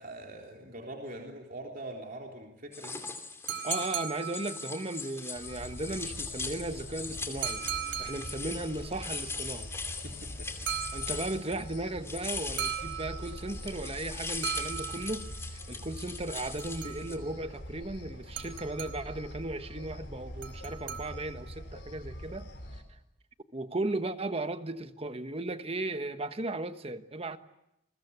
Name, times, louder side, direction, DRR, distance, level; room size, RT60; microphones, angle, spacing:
voice 1, 0.0-3.0 9.9-10.5, right 1 dB, 45° right, 1 dB, 3.6 m, -43 dB
sound 1, 2.7-11.8 12.0-17.2, left 4 dB, 15° left, 2.7 m, -40 dB
sound 2, 3.5-5.0 7.4-8.6 10.7-11.5 12.6-13.6 14.4-15.4 16.4-17.3 18.4-19.3 20.4-21.5, right 10 dB, 70° right, 4.7 m, -38 dB
voice 2, 3.6-7.6 8.0-9.7 10.9-22.5 23.5-27.4, right 2 dB, 30° right, 10 dB, 1.3 m, -36 dB
sound 3, 5.4-22.8, equal, 60° left, 4.8 m, -44 dB
29.5 x 22.0 x 8.2 m, 0.84 s
head